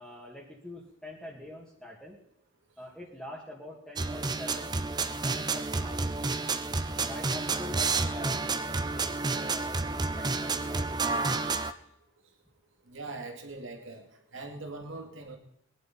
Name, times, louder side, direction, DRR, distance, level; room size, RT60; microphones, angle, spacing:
voice 1, 0.0-2.2 2.8-4.8 5.2-6.1 6.8-11.5, left 1 dB, ahead, -6 dB, 2.3 m, -45 dB
sound 1, 4.0-11.7, right 3 dB, 20° right, 0.7 m, -30 dB
voice 2, 12.9-14.0 14.3-15.4, right 2 dB, 90° right, 3 dB, 2.5 m, -41 dB
22.0 x 11.0 x 4.4 m, 0.75 s
head